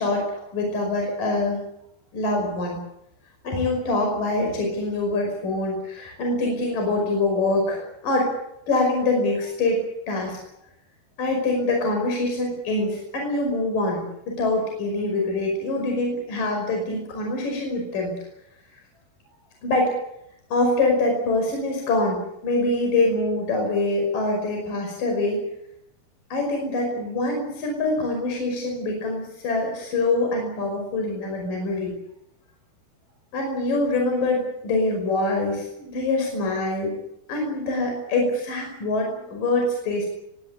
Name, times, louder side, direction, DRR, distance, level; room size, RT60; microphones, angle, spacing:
voice 1, 0.0-1.6 2.1-2.8 3.4-8.3 8.7-10.4 11.2-18.1 19.6-19.9 20.5-25.4 26.3-31.9 33.3-37.0 37.3-40.1, left 2 dB, 50° left, 2 dB, 7.0 m, -24 dB
23.5 x 18.0 x 8.4 m, 0.79 s
omnidirectional pair, 4.9 m